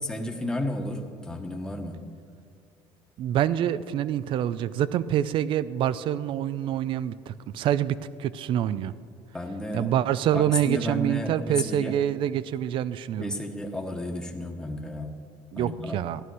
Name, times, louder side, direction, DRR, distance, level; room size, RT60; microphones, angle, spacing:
voice 1, 0.0-1.9 9.3-9.9 10.3-11.9 13.2-15.1 15.6-15.9, left 1 dB, 5° left, 2 dB, 1.3 m, -32 dB
voice 2, 3.2-8.9 9.7-13.3 15.5-16.2, right 11 dB, 55° right, 17 dB, 0.5 m, -26 dB
14.0 x 11.0 x 4.8 m, 2.2 s
cardioid pair, 115°, 10 cm